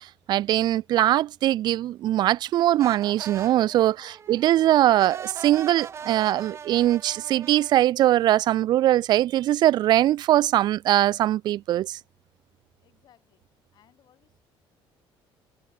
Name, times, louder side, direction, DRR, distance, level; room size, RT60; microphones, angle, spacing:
voice 1, 0.0-4.0 4.3-12.0, right 13 dB, 50° right, 0.4 m, -21 dB
sound 1, 2.8-7.8, right 7 dB, 30° right, 0.9 m, -41 dB
voice 2, 3.7-4.9 12.8-13.4 13.7-14.4, left 11 dB, 50° left, 6.3 m, -62 dB
cardioid pair, 170°, 9 cm